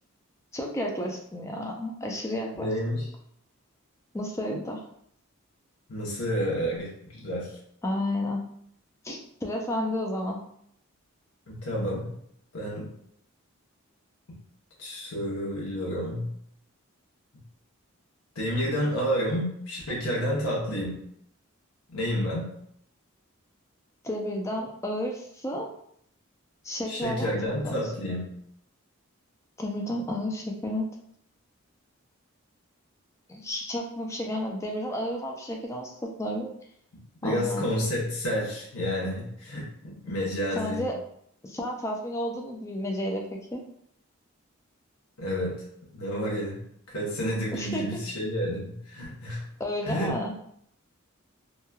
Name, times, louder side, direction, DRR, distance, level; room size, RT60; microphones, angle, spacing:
voice 1, 0.5-2.7 4.1-4.8 7.8-8.4 9.0-10.4 24.0-25.7 26.6-27.9 29.6-30.9 33.3-35.9 36.2-36.5 37.2-37.7 40.5-41.0 41.4-43.6 47.5-47.8 49.6-50.3, left 1 dB, 15° left, 1 dB, 0.3 m, -31 dB
voice 2, 2.6-3.1 5.9-7.5 11.5-12.1 12.5-12.9 14.8-16.3 18.4-21.0 21.9-22.5 26.9-28.3 37.2-40.9 45.2-45.6 45.9-46.6 46.9-49.4 49.8-50.2, equal, 85° left, -5 dB, 0.8 m, -30 dB
3.0 x 2.2 x 2.3 m, 0.69 s
head